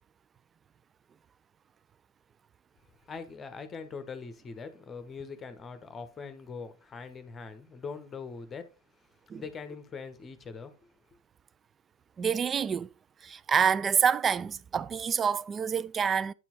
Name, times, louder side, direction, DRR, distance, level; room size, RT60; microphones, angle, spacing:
voice 1, 3.1-8.7 9.4-10.8, left 5 dB, 20° left, 1.0 m, -42 dB
voice 2, 12.2-12.9 13.2-16.3, right 7 dB, 20° right, 0.3 m, -27 dB
9.1 x 4.4 x 4.0 m
figure-of-eight pair, 90°, 0 cm